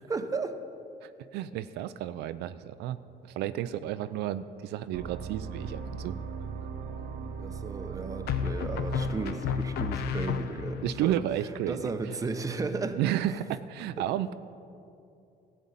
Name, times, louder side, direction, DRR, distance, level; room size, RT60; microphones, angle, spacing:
voice 1, 0.1-0.6 7.4-11.2 11.7-13.0, right 4 dB, 20° right, 8 dB, 0.8 m, -34 dB
voice 2, 1.0-3.0 3.4-6.1 10.8-11.9 13.0-14.3, right 12 dB, 80° right, 13 dB, 0.4 m, -32 dB
sound 1, 4.9-10.2, right 6 dB, 55° right, 0.8 m, -39 dB
sound 2, 5.6-6.2 8.3-10.9, left 7 dB, 70° left, 0.7 m, -32 dB
13.0 x 5.4 x 9.0 m, 2.6 s
cardioid pair, 110°, 17 cm